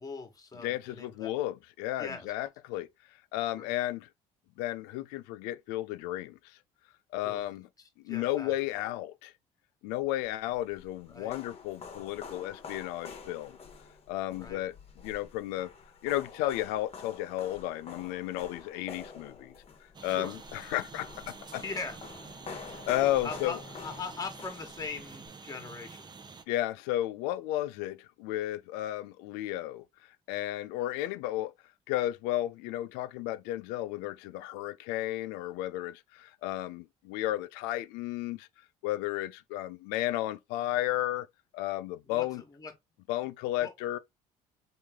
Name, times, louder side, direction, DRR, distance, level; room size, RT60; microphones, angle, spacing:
voice 1, 0.0-1.3 2.0-2.3 3.6-3.7 7.2-7.4 7.8-8.5 11.1-11.4 14.4-14.6 20.0-20.4 21.6-22.0 23.2-26.1 42.0-42.7 43.6-43.7, left 4 dB, 20° left, 1.2 m, -41 dB
voice 2, 0.6-2.9 3.3-4.1 4.6-6.6 7.1-7.7 8.0-9.3 9.8-13.6 14.1-14.7 15.0-15.7 16.0-19.5 20.0-21.6 22.9-23.6 26.5-29.9 30.3-31.5 31.9-38.5 38.8-41.3 41.5-42.4 43.1-44.0, left 14 dB, 80° left, 0.4 m, -33 dB
sound 1, 10.3-25.3, left 5 dB, 40° left, 1.0 m, -47 dB
sound 2, 19.9-26.4, right 4 dB, 25° right, 0.6 m, -48 dB
3.1 x 2.7 x 3.5 m
supercardioid pair, 75°, 16 cm